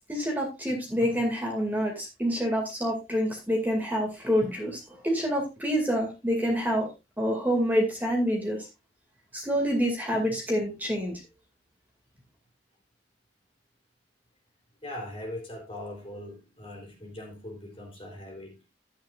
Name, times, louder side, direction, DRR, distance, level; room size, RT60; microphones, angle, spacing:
voice 1, 0.1-6.9 7.2-8.7 9.3-11.2, equal, 10° right, 0 dB, 2.4 m, -27 dB
voice 2, 14.8-18.7, left 1 dB, 30° left, 1 dB, 3.5 m, -40 dB
12.0 x 9.1 x 2.5 m, 0.25 s
head